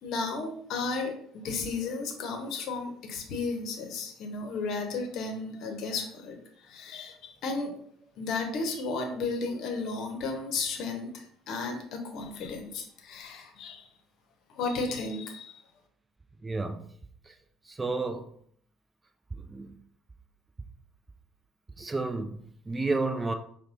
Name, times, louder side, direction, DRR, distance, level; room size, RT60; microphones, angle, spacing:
voice 1, 0.0-7.7 8.2-13.9 14.5-15.6, left 3 dB, 55° left, 4 dB, 0.8 m, -34 dB
voice 2, 16.4-16.9 17.2-17.4 17.6-18.3 19.3-19.8 21.8-23.3, right 3 dB, 20° right, 7 dB, 0.4 m, -31 dB
5.3 x 2.2 x 2.5 m, 0.64 s
figure-of-eight pair, 55°, 0 cm